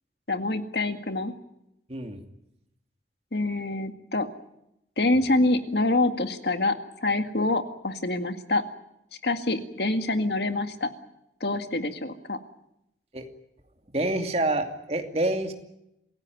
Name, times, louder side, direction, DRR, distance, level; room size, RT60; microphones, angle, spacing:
voice 1, 0.3-1.3 3.3-4.3 5.0-8.6 9.2-10.9 11.4-12.4, left 2 dB, 70° left, 8 dB, 1.9 m, -26 dB
voice 2, 1.9-2.2 13.1-13.3 13.9-15.5, right 2 dB, 35° right, 5 dB, 2.6 m, -27 dB
27.0 x 16.0 x 9.4 m, 0.83 s
head